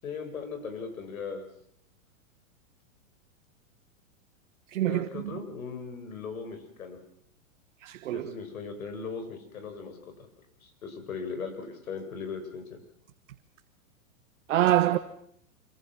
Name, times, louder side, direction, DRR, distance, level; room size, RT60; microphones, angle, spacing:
voice 1, 0.0-1.5 4.9-7.0 8.1-10.3 10.6-12.6, left 5 dB, 85° left, 6.4 m, -38 dB
voice 2, 4.7-5.4 7.8-8.3 14.5-15.0, right 13 dB, 65° right, 1.5 m, -25 dB
26.0 x 25.5 x 6.3 m
supercardioid pair, 165°, 41 cm